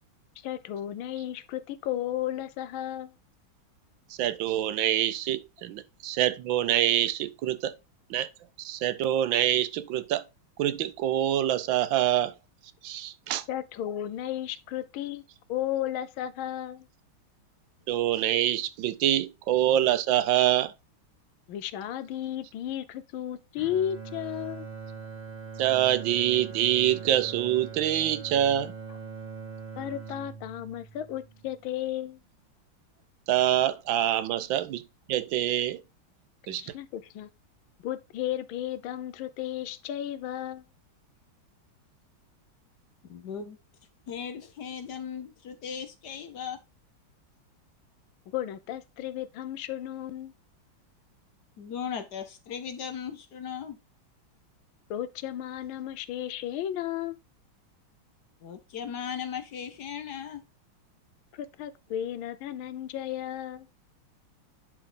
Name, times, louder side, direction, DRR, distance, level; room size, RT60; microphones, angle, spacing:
voice 1, 0.4-3.1 13.5-15.2 15.5-16.9 21.5-24.7 29.8-32.2 36.5-37.3 37.8-40.6 48.3-50.3 54.9-57.2 61.3-63.7, left 11 dB, 80° left, 1.4 m, -34 dB
voice 2, 4.1-7.7 8.1-8.3 8.6-10.2 10.6-12.3 12.8-13.4 17.9-20.7 25.6-28.7 33.3-34.8 35.1-35.8 36.5-36.6, right 12 dB, 75° right, 1.4 m, -25 dB
Bowed string instrument, 23.6-31.8, right 5 dB, 10° right, 1.0 m, -42 dB
voice 3, 43.0-43.6 44.1-46.6 51.6-53.8 58.4-60.4, left 7 dB, 60° left, 1.3 m, -37 dB
10.5 x 3.6 x 3.8 m
omnidirectional pair, 2.3 m